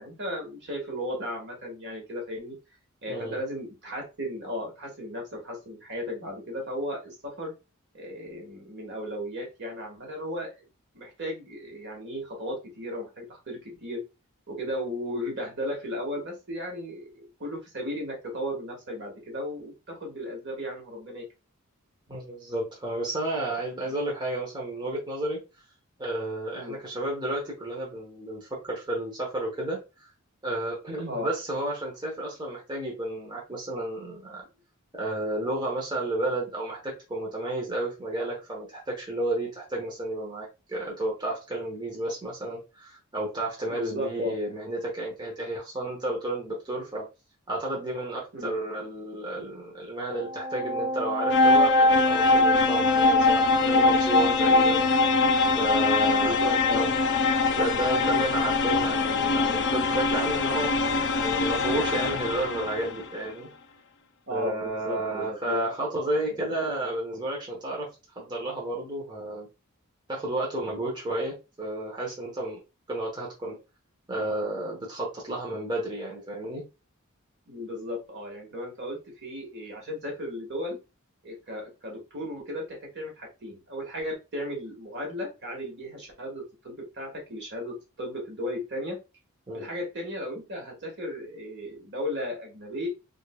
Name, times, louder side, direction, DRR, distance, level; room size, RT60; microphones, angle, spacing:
voice 1, 0.0-2.6 3.0-7.5 7.9-10.5 10.9-14.0 14.5-21.3 26.5-26.8 31.1-31.3 43.7-44.4 48.3-48.5 56.1-56.9 64.3-65.7 77.5-80.8 81.2-89.0 89.5-92.9, left 1 dB, 55° right, 0 dB, 1.5 m, -35 dB
voice 2, 3.1-3.4 22.1-25.4 26.0-29.8 30.4-34.4 34.9-47.1 47.5-55.1 55.6-56.4 56.7-57.0 57.5-60.7 61.2-63.5 64.3-67.9 68.1-69.5 70.1-72.6 72.9-73.6 74.1-76.6 89.5-89.7, right 1 dB, 20° right, -3 dB, 1.0 m, -32 dB
sound 1, 50.1-63.0, left 3 dB, 60° left, 0.5 m, -23 dB
3.6 x 3.4 x 2.2 m, 0.28 s
head